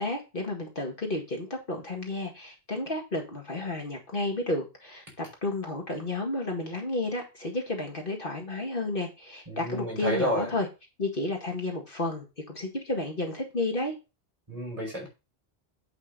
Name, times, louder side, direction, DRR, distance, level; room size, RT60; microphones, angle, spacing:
voice 1, 0.0-10.7 11.0-14.0, left 2 dB, 55° left, 2 dB, 2.1 m, -32 dB
voice 2, 9.5-10.5 14.5-15.1, equal, 35° right, -2 dB, 5.4 m, -30 dB
8.6 x 5.4 x 5.2 m, 0.28 s
omnidirectional pair, 1.1 m